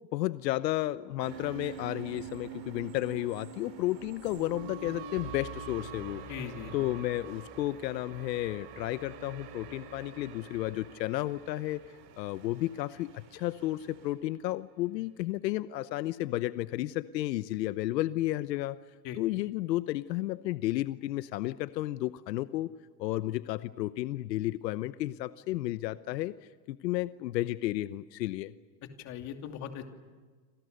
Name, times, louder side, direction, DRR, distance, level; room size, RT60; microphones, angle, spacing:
voice 1, 0.1-6.2 6.7-11.8 12.2-18.8 19.2-22.7 23.0-26.3 26.7-28.5, left 16 dB, 85° left, 14 dB, 1.0 m, -32 dB
sound 1, 1.2-13.4, right 6 dB, 75° right, 5.2 m, -46 dB
sound 2, 1.2-14.1, right 6 dB, 90° right, 6.2 m, -55 dB
voice 2, 6.3-6.7 19.0-19.2 29.0-29.9, left 9 dB, 35° left, 5 dB, 2.8 m, -39 dB
28.5 x 27.0 x 6.7 m, 1.5 s
supercardioid pair, 165°, 49 cm